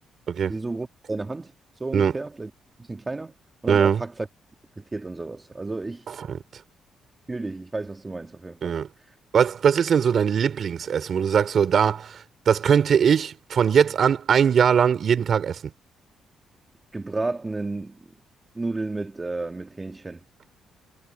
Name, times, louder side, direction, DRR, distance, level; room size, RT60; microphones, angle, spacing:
voice 1, 0.5-1.5 1.8-2.5 2.9-3.3 3.6-4.3 4.8-6.0 7.3-8.8 16.9-17.9 18.6-20.2, right 3 dB, 20° right, 1.6 m, -32 dB
voice 2, 3.7-4.0 6.1-6.4 8.6-8.9 9.3-15.7, right 7 dB, 55° right, 4.1 m, -21 dB
cardioid pair, 90°, 0 cm